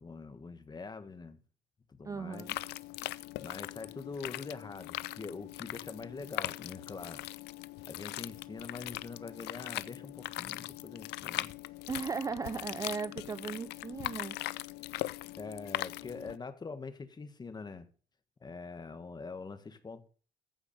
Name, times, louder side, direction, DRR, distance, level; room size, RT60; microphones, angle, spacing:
voice 1, 0.0-1.4 1.9-2.5 3.4-7.2 7.9-11.5 15.4-17.9 18.4-20.1, left 4 dB, 25° left, 1.6 m, -44 dB
voice 2, 2.0-2.6 11.9-14.4, right 5 dB, 20° right, 0.4 m, -37 dB
sound 1, 2.3-16.4, left 18 dB, 80° left, 0.5 m, -40 dB
14.5 x 4.9 x 6.6 m
cardioid pair, 110°, 17 cm